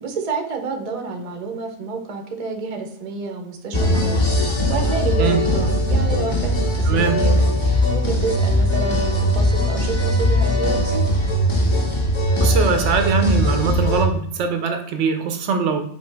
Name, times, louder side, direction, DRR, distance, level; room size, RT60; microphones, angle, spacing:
voice 1, 0.0-11.0, right 4 dB, 40° right, 3 dB, 0.7 m, -29 dB
sound 1, 3.7-14.0, equal, 30° left, 0.6 m, -19 dB
voice 2, 6.9-7.2 12.4-15.8, right 5 dB, 80° right, 6 dB, 0.9 m, -22 dB
5.3 x 2.8 x 3.3 m, 0.69 s
omnidirectional pair, 1.2 m